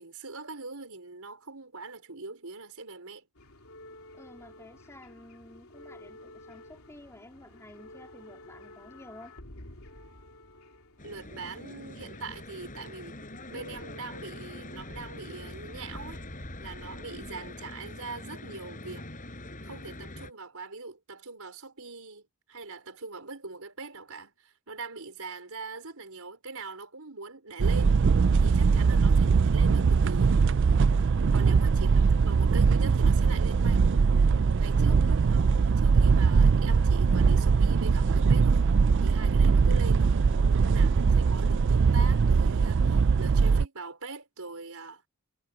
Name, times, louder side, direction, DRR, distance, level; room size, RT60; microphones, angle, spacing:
voice 1, 0.0-3.3 11.0-16.2 16.6-19.1 19.6-28.0 28.4-30.5 31.3-33.8 34.6-38.7 39.0-40.1 40.6-45.0, right 3 dB, 75° right, 4.9 m, -42 dB
sound 1, 3.3-12.8 13.7-14.8 15.1-15.3 16.2-16.3, left 1 dB, 70° left, 3.0 m, -51 dB
voice 2, 4.1-9.3 28.7-29.0 31.3-31.8 34.7-35.1, left 1 dB, 15° left, 3.6 m, -51 dB
sound 2, 11.0-20.3, left 1 dB, 35° left, 7.9 m, -43 dB
sound 3, 27.6-43.7, right 5 dB, 55° right, 0.4 m, -22 dB
head